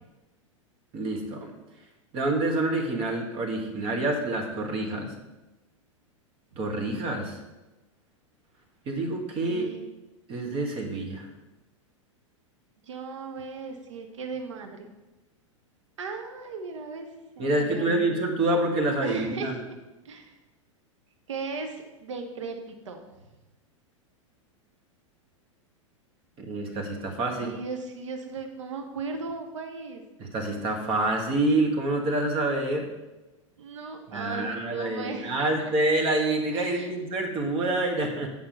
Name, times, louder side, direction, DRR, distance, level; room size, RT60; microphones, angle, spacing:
voice 1, 0.9-1.5 2.1-5.1 6.6-7.4 8.8-9.7 10.3-11.3 17.4-19.6 26.4-27.5 30.2-32.9 34.1-38.3, right 2 dB, 35° right, 3 dB, 1.7 m, -27 dB
voice 2, 9.5-9.8 12.8-14.9 16.0-17.1 17.4-18.0 19.0-19.6 20.0-20.4 21.3-23.0 27.3-30.0 33.6-35.6 36.5-36.9, right 4 dB, 65° right, 5 dB, 1.0 m, -37 dB
8.8 x 5.5 x 5.3 m, 1.1 s
figure-of-eight pair, 95°, 16 cm